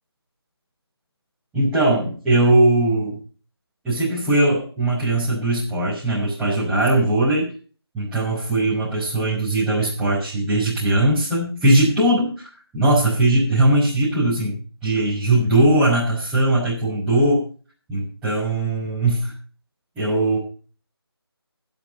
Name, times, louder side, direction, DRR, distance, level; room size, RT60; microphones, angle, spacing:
voice 1, 1.5-3.2 3.8-7.5 7.9-12.3 12.7-17.4 17.9-19.3 20.0-20.4, right 1 dB, 5° right, -14 dB, 6.2 m, -19 dB
16.5 x 8.2 x 5.6 m, 0.40 s
figure-of-eight pair, 165°, 14 cm